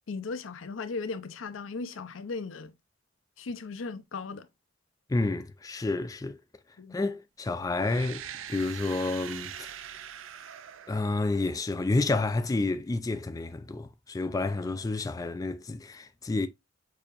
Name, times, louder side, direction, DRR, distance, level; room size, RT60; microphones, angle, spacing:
voice 1, 0.1-2.7 3.4-4.5 6.8-7.0, left 4 dB, 85° left, 0.6 m, -37 dB
voice 2, 5.1-6.4 6.9-9.7 10.9-16.5, left 2 dB, 20° left, 0.3 m, -30 dB
sound 1, 7.8-11.7, right 9 dB, 85° right, 0.4 m, -43 dB
6.7 x 2.8 x 2.4 m
head